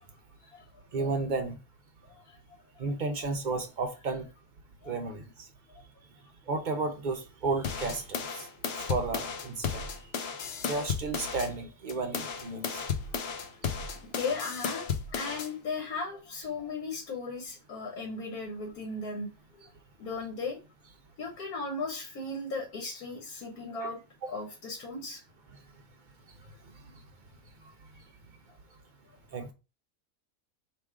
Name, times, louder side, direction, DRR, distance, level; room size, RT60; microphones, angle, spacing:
voice 1, 0.9-1.6 2.8-4.3 4.9-5.2 6.5-8.2 8.9-9.8 10.7-12.8 23.8-23.9 24.2-24.3 29.3-29.5, right 3 dB, 55° right, 0.5 m, -32 dB
sound 1, 7.6-11.5 11.9-15.5, left 6 dB, 60° left, 0.7 m, -34 dB
voice 2, 14.0-19.3 20.0-20.6 21.2-24.0 24.3-25.2, left 3 dB, 80° left, 1.5 m, -36 dB
3.5 x 2.9 x 4.6 m
omnidirectional pair, 1.5 m